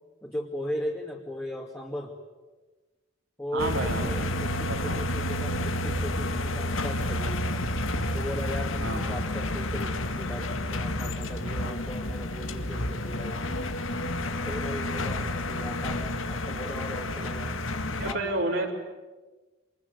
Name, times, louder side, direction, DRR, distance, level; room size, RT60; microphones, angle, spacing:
voice 1, 0.2-2.1 3.4-7.4 8.1-13.4 14.5-17.6 18.1-18.5, equal, 10° left, -3 dB, 2.7 m, -37 dB
voice 2, 3.5-4.3 4.5-5.0 8.8-9.2 18.0-18.7, right 2 dB, 80° right, -1 dB, 4.1 m, -31 dB
sound 1, 3.6-18.1, left 1 dB, 85° left, 1.9 m, -30 dB
28.0 x 22.0 x 9.6 m, 1.2 s
head